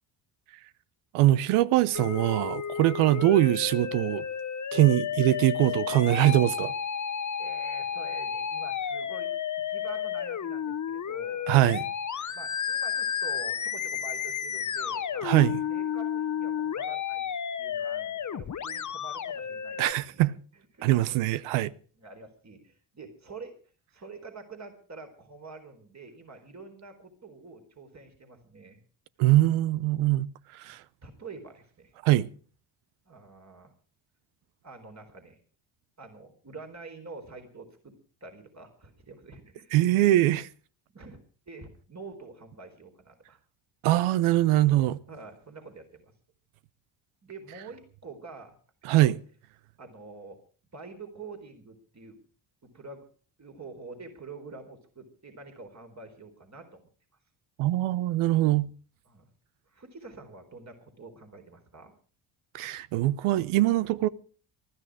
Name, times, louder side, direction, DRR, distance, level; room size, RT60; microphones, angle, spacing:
voice 1, 1.1-4.2 4.7-6.7 11.5-11.9 15.2-15.5 19.8-20.3 20.8-21.7 29.2-30.3 30.5-30.8 32.0-32.3 39.7-40.5 43.8-45.0 48.8-49.2 57.6-58.7 62.5-64.1, right 15 dB, 75° right, 0.8 m, -23 dB
Musical instrument, 1.9-19.9, left 8 dB, 35° left, 1.1 m, -32 dB
voice 2, 7.4-9.3 9.7-11.5 12.3-17.3 17.6-20.2 20.7-21.0 22.0-23.5 23.9-28.8 30.6-30.8 31.0-31.9 33.1-33.7 34.6-35.4 36.0-40.1 40.9-41.2 41.5-43.4 45.1-46.1 47.2-48.6 49.8-50.4 50.7-52.2 52.7-53.0 53.4-56.9 59.1-59.3 59.7-61.9, right 4 dB, 35° right, 4.2 m, -46 dB
19.5 x 13.0 x 4.9 m
hypercardioid pair, 55°, 50 cm